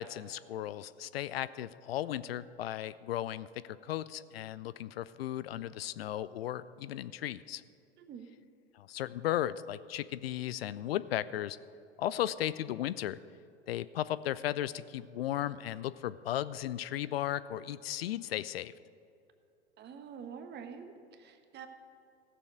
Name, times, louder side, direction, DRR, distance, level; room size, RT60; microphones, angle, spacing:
voice 1, 0.0-7.6 8.7-11.6 12.0-13.2 13.7-18.7, left 12 dB, 70° left, 16 dB, 0.5 m, -35 dB
voice 2, 19.8-21.7, right 7 dB, 35° right, 8 dB, 1.2 m, -46 dB
16.0 x 6.9 x 6.3 m, 2.5 s
figure-of-eight pair, 85°, 32 cm